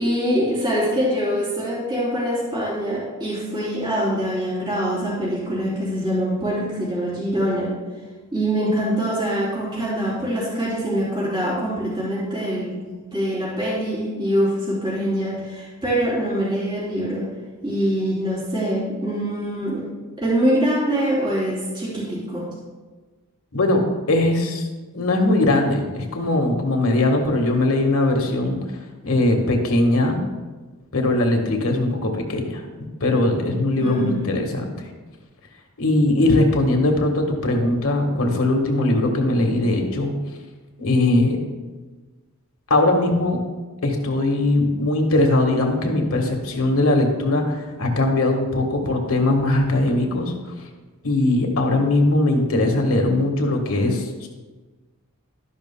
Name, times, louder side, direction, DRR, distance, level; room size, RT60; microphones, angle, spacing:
voice 1, 0.0-7.7 8.3-17.2 17.6-19.8 20.2-22.5 33.8-34.4, equal, 20° right, -8 dB, 3.4 m, -24 dB
voice 2, 24.1-24.7 24.9-28.6 29.0-30.2 30.9-32.6 33.0-34.9 35.8-40.1 40.8-41.4 42.7-43.4 43.8-50.5 51.0-54.3, left 2 dB, 65° left, 3 dB, 1.5 m, -20 dB
12.5 x 11.0 x 2.2 m, 1.3 s
head